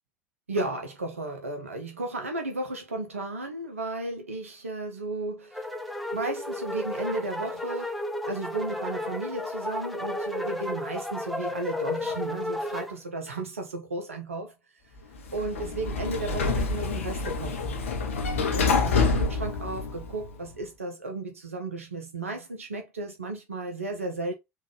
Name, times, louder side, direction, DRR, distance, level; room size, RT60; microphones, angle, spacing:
voice 1, 0.5-5.7 6.1-14.5 15.3-17.8 18.5-24.3, right 2 dB, 80° right, 0.5 m, -34 dB
sound 1, 5.5-12.9, left 1 dB, ahead, 0.7 m, -33 dB
Sliding door, 15.2-20.4, left 4 dB, 75° left, 0.6 m, -27 dB
3.5 x 2.3 x 3.1 m
figure-of-eight pair, 65°, 7 cm